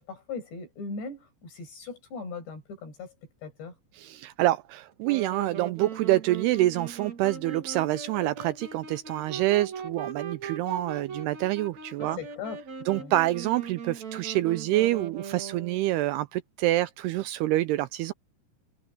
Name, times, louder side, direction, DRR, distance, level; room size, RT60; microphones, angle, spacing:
voice 1, 0.0-3.1 3.4-3.7 12.0-12.6 12.9-13.1, left 4 dB, 70° left, 8.8 m, -39 dB
voice 2, 4.0-12.2 12.9-18.1, right 16 dB, 85° right, 2.4 m, -27 dB
Wind instrument woodwind instrument, 5.0-15.9, right 6 dB, 40° right, 4.5 m, -40 dB
omnidirectional pair, 5.1 m